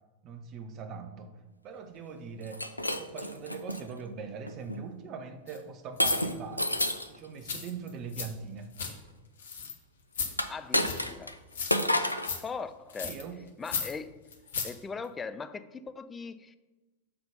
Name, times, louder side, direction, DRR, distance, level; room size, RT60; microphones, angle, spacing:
voice 1, 0.2-2.7 3.0-6.8 7.1-8.7 13.0-13.4, right 5 dB, 35° right, 7 dB, 0.7 m, -42 dB
Shatter, 2.4-3.8 4.5-4.8 6.0-7.2 10.3-11.3 11.7-12.3, left 1 dB, 85° left, 0.4 m, -29 dB
sound 1, 5.5-5.6 6.0-6.2 6.8-7.0 7.4-8.3 8.5-8.9 9.4-9.7 10.1-10.3 10.8-11.1 11.5-11.9 12.2-12.4 12.9-13.2 13.6-13.9 14.3-14.7 15.0-15.1, left 6 dB, 65° left, 0.9 m, -35 dB
voice 2, 10.5-11.4 12.4-13.2 13.6-14.2 14.6-16.6, left 5 dB, 15° left, 12 dB, 0.4 m, -40 dB
6.8 x 3.9 x 5.4 m, 1.2 s
figure-of-eight pair, 90°, 0 cm